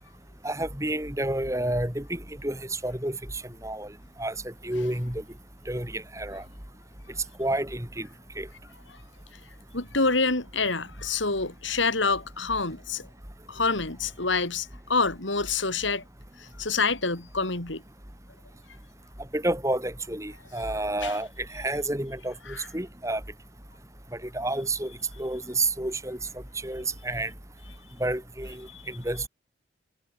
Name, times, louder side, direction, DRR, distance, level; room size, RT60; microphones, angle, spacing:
voice 1, 0.4-3.9 4.2-5.2 5.7-6.4 7.4-8.1 8.4-8.5 19.3-23.2 24.1-24.9 25.2-26.2 26.6-27.3 28.0-29.3, right 2 dB, 15° right, 3.9 m, -30 dB
voice 2, 9.7-13.1 13.5-16.0 16.4-17.8 21.0-21.2 22.5-22.7 28.7-28.8, left 4 dB, 80° left, 4.2 m, -27 dB
head